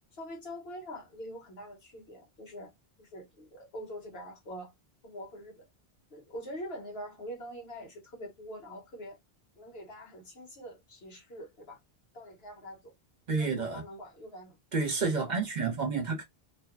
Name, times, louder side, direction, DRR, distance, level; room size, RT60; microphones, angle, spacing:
voice 1, 0.1-2.7 3.0-4.7 5.0-5.7 6.1-9.2 9.6-11.8 12.1-12.9 13.3-14.6, equal, 75° left, 1.3 m, -44 dB
voice 2, 13.3-13.8 14.7-16.2, right 4 dB, 50° right, 0.8 m, -30 dB
2.6 x 2.3 x 2.4 m
omnidirectional pair, 1.1 m